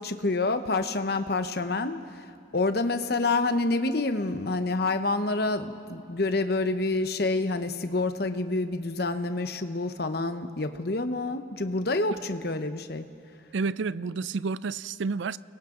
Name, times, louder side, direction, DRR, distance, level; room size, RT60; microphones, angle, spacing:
voice 1, 0.0-2.3 2.5-13.1, left 2 dB, 55° left, 0.9 m, -28 dB
voice 2, 13.5-15.4, right 4 dB, 75° right, 0.4 m, -30 dB
30.0 x 22.5 x 3.8 m
head